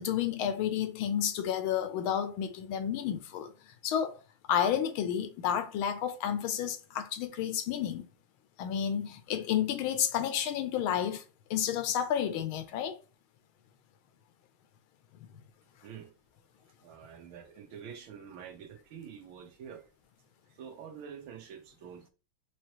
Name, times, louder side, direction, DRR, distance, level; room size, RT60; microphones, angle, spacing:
voice 1, 0.0-3.5 3.8-4.2 4.5-8.1 8.6-11.2 11.5-13.0, left 9 dB, 85° left, 1.6 m, -31 dB
voice 2, 15.8-16.1 16.8-19.9 20.5-22.1, right 7 dB, 80° right, 1.7 m, -47 dB
5.3 x 3.2 x 2.9 m
omnidirectional pair, 2.2 m